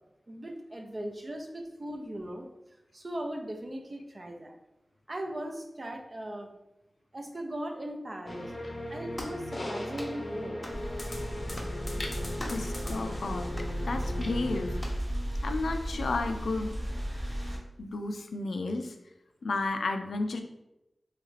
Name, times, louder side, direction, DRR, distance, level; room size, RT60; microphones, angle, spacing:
voice 1, 0.3-4.6 5.1-6.5 7.1-8.5 8.9-10.6 12.6-12.8, right 1 dB, 45° right, 3 dB, 0.6 m, -39 dB
sound 1, 8.3-14.8, left 1 dB, 45° left, 0.6 m, -38 dB
sound 2, 9.1-9.4 9.9-10.2 10.6-10.8 11.5-11.8 12.4-12.7 13.5-13.7 14.8-15.0, equal, 10° left, 0.7 m, -41 dB
sound 3, 10.7-17.6, equal, 60° right, 1.1 m, -35 dB
voice 2, 12.5-13.5 13.8-14.7 15.4-16.7 17.8-18.9 19.4-20.4, left 3 dB, 85° left, 6 dB, 0.3 m, -32 dB
3.1 x 2.4 x 3.2 m, 0.90 s
cardioid pair, 45°, 0 cm